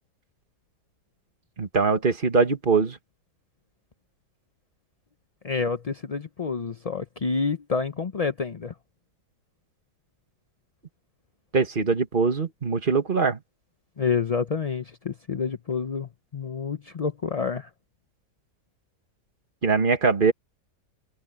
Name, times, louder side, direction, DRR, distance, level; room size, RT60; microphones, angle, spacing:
voice 1, 1.6-3.0 11.5-13.4 19.6-20.3, right 4 dB, 30° right, 1.8 m, -22 dB
voice 2, 5.4-8.7 14.0-17.7, left 5 dB, 50° left, 0.4 m, -28 dB
omnidirectional pair, 1.7 m